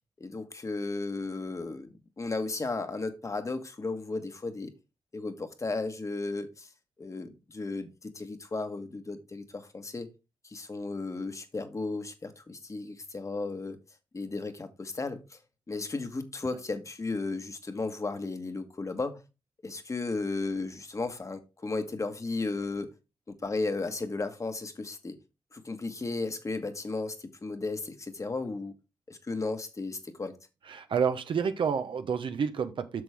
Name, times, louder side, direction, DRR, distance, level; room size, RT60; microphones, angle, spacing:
voice 1, 0.2-4.7 5.1-6.7 7.0-10.1 10.4-13.8 14.1-15.4 15.7-19.2 19.6-22.9 23.3-25.2 25.5-28.7 29.1-30.4, left 3 dB, 35° left, 1.4 m, -34 dB
voice 2, 30.7-33.0, right 6 dB, 70° right, 1.0 m, -29 dB
8.0 x 6.1 x 3.6 m
cardioid pair, 65°, 9 cm